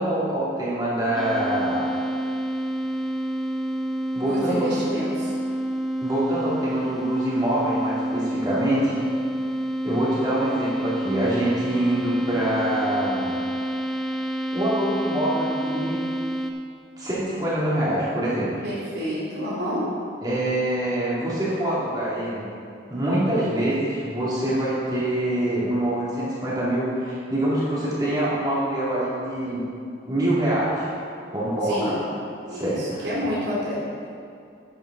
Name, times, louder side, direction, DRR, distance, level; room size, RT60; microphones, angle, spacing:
voice 1, 0.0-1.9 4.1-4.7 6.0-9.0 9.8-13.4 14.5-16.0 17.0-18.5 20.2-22.4 22.9-29.6 30.1-30.8 31.3-32.0 32.5-33.0, right 1 dB, 20° right, -8 dB, 2.4 m, -25 dB
sound 1, 1.1-16.5, right 1 dB, ahead, 0.4 m, -28 dB
voice 2, 4.2-5.3 18.6-19.9 31.6-32.0 32.5-34.1, equal, 70° right, -7 dB, 2.8 m, -29 dB
11.0 x 8.7 x 3.9 m, 2.4 s
head